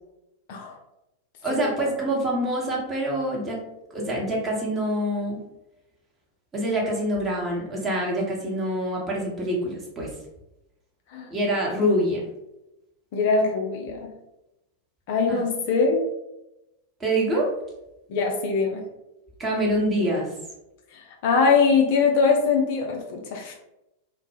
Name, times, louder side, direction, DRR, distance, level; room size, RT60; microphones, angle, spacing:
voice 1, 1.4-3.6 3.9-5.4 6.5-10.1 11.3-12.2 15.3-15.4 17.0-17.5 19.4-20.3, right 1 dB, 20° right, -3 dB, 0.8 m, -25 dB
voice 2, 13.1-14.1 15.1-16.0 18.1-18.8 21.2-23.5, left 4 dB, 50° left, 1 dB, 0.4 m, -22 dB
2.0 x 2.0 x 3.1 m, 0.91 s
figure-of-eight pair, 90°, 0 cm